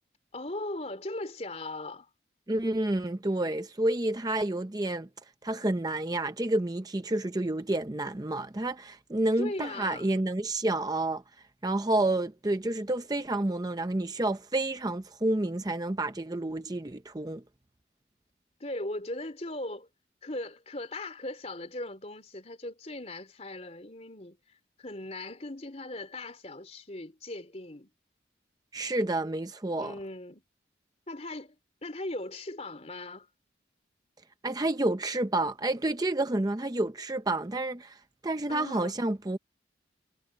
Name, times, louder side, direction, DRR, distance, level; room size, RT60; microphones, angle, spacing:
voice 1, 0.3-2.1 9.4-10.1 18.6-19.9 20.2-24.4 24.8-27.9 29.8-30.4 31.1-31.6 31.8-33.3 38.5-38.9, left 2 dB, 35° left, 3.7 m, -38 dB
voice 2, 2.5-5.1 5.4-11.2 11.6-17.4 28.7-29.9 34.4-38.0 38.2-39.4, right 2 dB, 20° right, 0.6 m, -29 dB
head